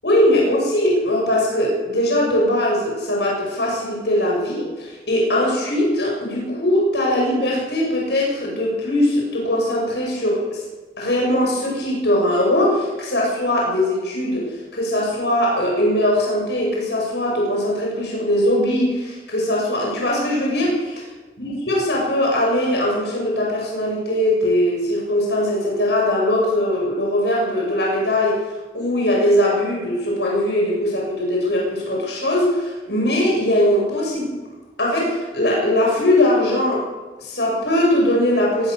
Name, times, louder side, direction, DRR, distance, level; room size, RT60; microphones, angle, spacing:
voice 1, 0.0-10.6 11.0-21.0 21.4-28.4 28.7-34.3 34.8-36.9 37.2-38.7, left 1 dB, 85° left, -2 dB, 7.3 m, -20 dB
21.5 x 20.0 x 6.8 m, 1.3 s
head